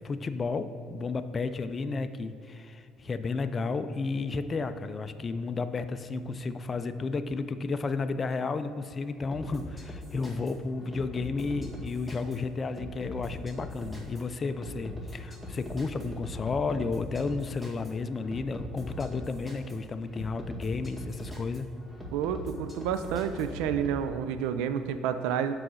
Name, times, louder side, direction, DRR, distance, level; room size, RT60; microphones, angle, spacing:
voice 1, 0.0-21.7, left 4 dB, 35° left, 9 dB, 0.4 m, -32 dB
sound 1, 9.3-24.0, equal, 15° right, 1.9 m, -42 dB
voice 2, 22.1-25.5, right 8 dB, 85° right, 10 dB, 0.4 m, -30 dB
6.0 x 4.9 x 6.4 m, 2.5 s
supercardioid pair, 75°, 0 cm